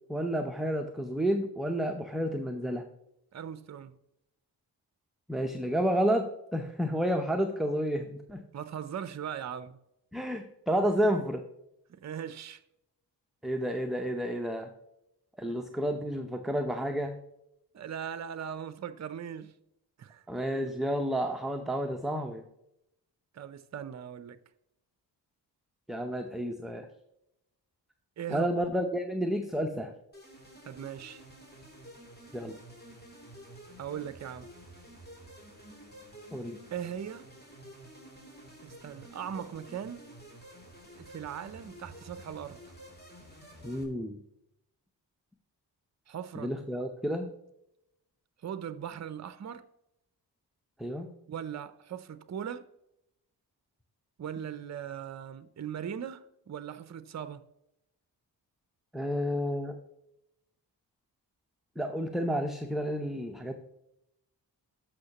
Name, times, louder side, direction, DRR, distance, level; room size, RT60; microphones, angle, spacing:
voice 1, 0.1-2.8 5.3-8.4 10.1-11.4 13.4-14.7 15.4-17.2 20.3-22.4 25.9-26.9 28.3-29.9 32.3-32.6 36.3-36.6 43.6-44.2 46.3-47.3 50.8-51.1 58.9-59.8 61.8-63.5, equal, ahead, 0.8 m, -30 dB
voice 2, 3.3-3.9 8.5-9.8 11.9-12.6 17.7-19.5 20.0-20.2 20.5-20.7 23.3-24.4 28.2-28.5 30.6-31.2 33.8-34.5 36.7-37.3 38.6-40.1 40.9-42.6 46.1-46.5 48.4-49.7 51.3-52.7 54.2-57.4, right 8 dB, 40° right, 0.6 m, -39 dB
sound 1, 30.1-43.8, right 1 dB, 25° left, 3.1 m, -51 dB
13.0 x 5.8 x 2.9 m
cardioid pair, 60°, 42 cm